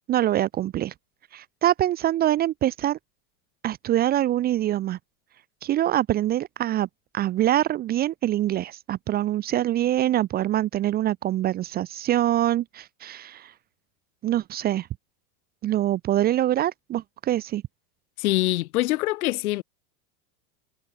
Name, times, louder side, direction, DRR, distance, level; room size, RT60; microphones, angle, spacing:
voice 1, 0.1-0.9 1.3-3.0 3.6-5.0 5.6-6.9 7.1-13.5 14.2-14.9 15.6-17.6, right 13 dB, 20° right, 0.5 m, -24 dB
voice 2, 18.2-19.6, left 18 dB, 85° left, 1.7 m, -24 dB
supercardioid pair, 150°, 43 cm